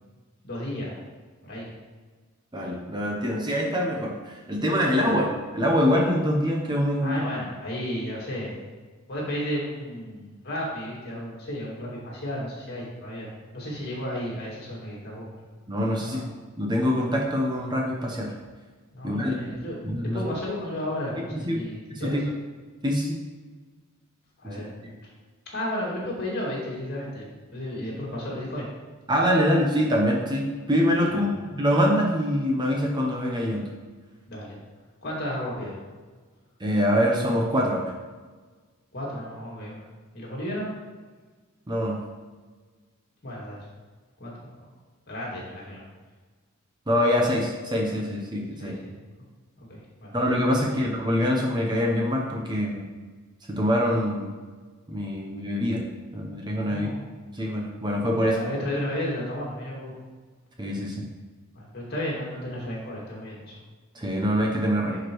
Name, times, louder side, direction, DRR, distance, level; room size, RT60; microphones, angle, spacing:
voice 1, 0.4-1.0 1.4-1.7 5.0-5.2 7.0-8.5 9.1-15.3 16.1-16.2 18.9-22.2 24.4-24.7 25.5-28.6 31.1-31.2 34.3-34.6 35.0-35.8 38.9-39.8 40.1-40.7 43.2-43.6 44.2-44.3 45.1-45.8 48.6-48.9 49.7-50.1 50.7-50.8 56.7-57.1 58.2-59.9 61.5-63.6 64.9-65.0, left 1 dB, 50° left, -4 dB, 2.3 m, -33 dB
voice 2, 2.5-5.3 5.5-7.2 15.7-16.3 16.6-18.3 19.0-19.4 19.8-20.2 21.3-22.2 22.8-23.2 24.4-24.6 29.1-33.7 36.6-37.9 41.7-42.0 46.9-48.7 50.1-52.9 53.5-54.3 54.9-55.8 56.1-56.9 57.3-58.4 60.6-61.0 63.9-64.9, equal, 20° right, -1 dB, 0.8 m, -24 dB
10.5 x 5.0 x 3.1 m, 1.4 s
head